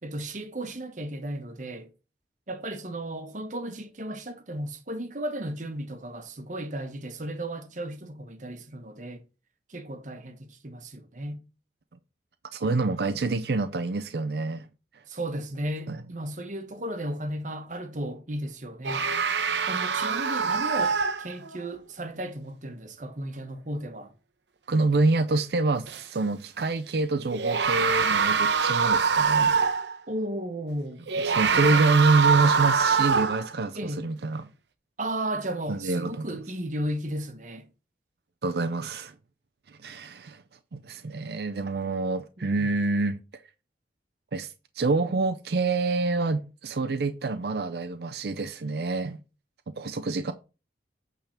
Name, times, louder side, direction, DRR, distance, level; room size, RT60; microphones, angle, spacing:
voice 1, 0.0-1.9 2.5-9.2 9.7-11.4 15.1-19.0 19.4-24.1 30.1-31.0 31.5-32.0 33.7-34.1 35.0-37.7, right 1 dB, 45° right, 1.1 m, -35 dB
voice 2, 12.5-14.7 15.9-16.0 24.7-29.5 31.2-34.5 35.7-36.3 38.4-39.1 39.7-40.4 40.7-43.2 44.3-49.2 49.8-50.3, right 3 dB, 65° right, 0.5 m, -26 dB
sound 1, 18.8-21.6 25.9-26.0 27.3-29.9 31.1-33.5, right 5 dB, 85° right, 0.8 m, -24 dB
8.8 x 3.7 x 5.7 m
head